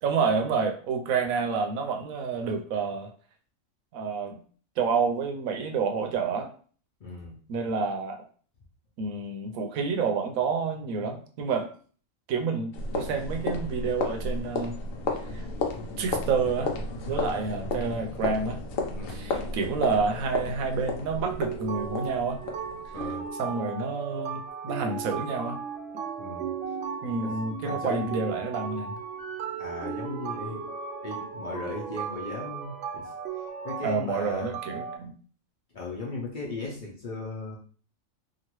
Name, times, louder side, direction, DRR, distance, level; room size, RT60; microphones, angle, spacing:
voice 1, 0.0-3.1 3.9-4.4 4.8-6.5 7.5-8.2 9.0-11.7 12.3-14.8 15.3-15.4 16.0-16.7 17.1-18.6 19.1-22.4 23.4-25.6 27.0-29.0 33.8-35.1, right 5 dB, 85° right, 4 dB, 1.0 m, -29 dB
voice 2, 7.0-7.4 17.1-17.4 18.9-19.3 22.9-23.2 26.2-26.5 27.2-27.3 27.6-28.0 29.6-30.7 31.0-33.0 33.6-34.5 35.7-37.6, left 2 dB, 45° left, -3 dB, 0.8 m, -37 dB
sound 1, 12.7-23.3, left 3 dB, 85° left, 1.0 m, -33 dB
sound 2, 21.3-35.0, right 6 dB, 65° right, 0.7 m, -36 dB
2.9 x 2.5 x 2.9 m, 0.43 s
omnidirectional pair, 1.4 m